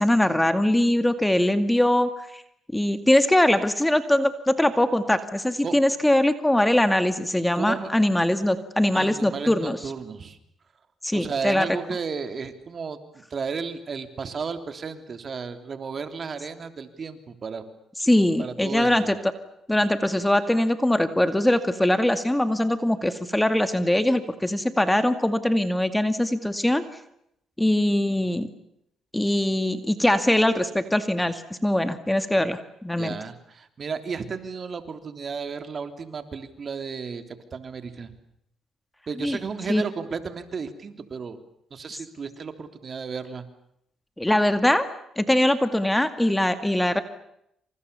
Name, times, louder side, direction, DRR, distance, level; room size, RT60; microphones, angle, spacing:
voice 1, 0.0-2.4 2.7-9.8 11.0-11.7 18.0-19.2 19.7-26.8 27.6-28.5 29.1-33.1 39.2-39.4 39.7-39.8 44.2-44.9 45.2-47.0, left 1 dB, 10° left, 10 dB, 2.1 m, -22 dB
voice 2, 7.5-7.9 8.9-10.4 11.1-17.6 18.4-19.1 33.0-38.1 39.1-41.4 41.7-43.4, right 5 dB, 45° right, 8 dB, 3.4 m, -33 dB
28.0 x 27.5 x 7.0 m, 0.77 s
cardioid pair, 90°, 0 cm